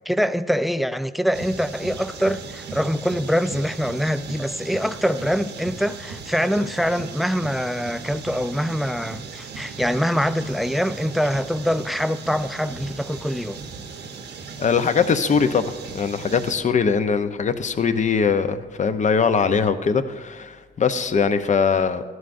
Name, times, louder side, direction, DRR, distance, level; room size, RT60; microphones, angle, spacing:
voice 1, 0.1-13.6, equal, ahead, 0.4 m, -24 dB
sound 1, 1.3-16.5, right 5 dB, 60° right, 0.9 m, -38 dB
voice 2, 14.6-15.6 15.9-22.0, left 6 dB, 40° left, 0.7 m, -21 dB
13.5 x 11.0 x 2.6 m
cardioid pair, 90°, 20 cm